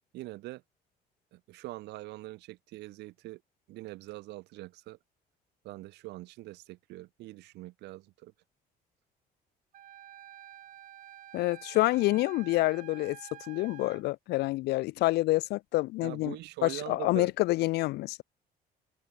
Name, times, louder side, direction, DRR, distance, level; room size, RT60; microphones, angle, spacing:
voice 1, 0.1-0.6 1.3-3.4 3.7-5.0 5.6-8.3 16.0-17.3, right 18 dB, 85° right, 2.7 m, -43 dB
Wind instrument woodwind instrument, 9.7-14.0, right 11 dB, 50° right, 0.8 m, -49 dB
voice 2, 11.3-13.2 13.5-16.4 16.6-18.2, left 19 dB, 75° left, 0.5 m, -27 dB
open air
cardioid pair, 110°, 17 cm